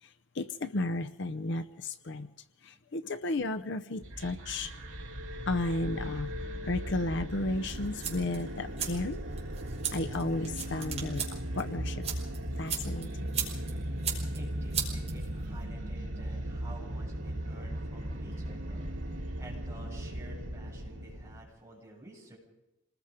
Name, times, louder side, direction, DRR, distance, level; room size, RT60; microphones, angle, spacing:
voice 1, 0.0-2.3 2.6-4.7 5.5-6.3 6.6-9.2 9.9-12.0 12.6-13.1, left 2 dB, 60° left, 10 dB, 0.7 m, -33 dB
sound 1, 4.0-21.4, right 1 dB, 65° right, 2.7 m, -37 dB
sound 2, 7.6-15.6, right 7 dB, 30° right, 4.8 m, -39 dB
voice 2, 14.3-18.9 19.4-22.4, right 1 dB, 15° right, -3 dB, 7.4 m, -51 dB
26.5 x 20.0 x 5.2 m, 0.94 s
head